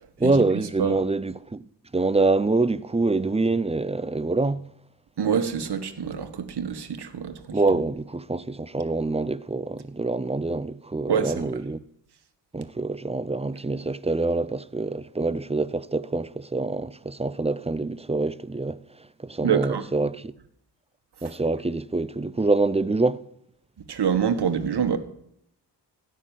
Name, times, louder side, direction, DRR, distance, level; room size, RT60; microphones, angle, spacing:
voice 1, 0.2-1.6 1.9-4.6 7.5-11.8 12.5-18.8 19.2-20.3 21.2-23.2, right 3 dB, 15° right, 0.6 m, -25 dB
voice 2, 5.2-7.6 11.1-11.5 19.4-19.8 23.9-25.0, right 7 dB, 65° right, 1.7 m, -26 dB
16.5 x 6.6 x 9.1 m
cardioid pair, 65°, 42 cm